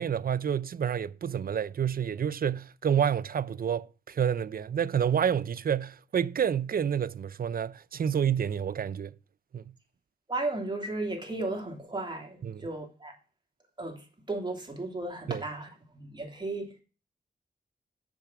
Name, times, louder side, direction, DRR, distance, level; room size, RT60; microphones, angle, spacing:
voice 1, 0.0-9.1 9.5-9.6 12.4-12.6 15.3-15.4, right 8 dB, 60° right, 0.5 m, -29 dB
voice 2, 10.3-13.1 13.8-16.7, right 2 dB, 25° right, 2.9 m, -35 dB
7.2 x 5.6 x 6.0 m
cardioid pair, 60°, 17 cm